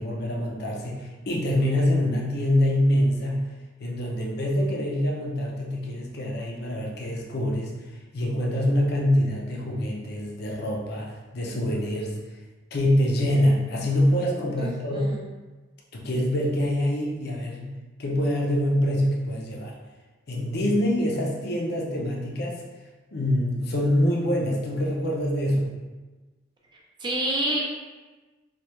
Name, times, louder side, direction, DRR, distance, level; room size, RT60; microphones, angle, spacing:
voice 1, 0.0-3.4 3.8-7.7 8.1-12.1 12.7-15.1 15.9-17.7 18.0-19.7 20.3-22.6 23.1-25.7, left 1 dB, 50° left, -2 dB, 0.5 m, -25 dB
voice 2, 14.6-15.2 27.0-27.6, right 1 dB, 25° right, -3 dB, 0.5 m, -28 dB
3.3 x 2.3 x 2.9 m, 1.2 s
head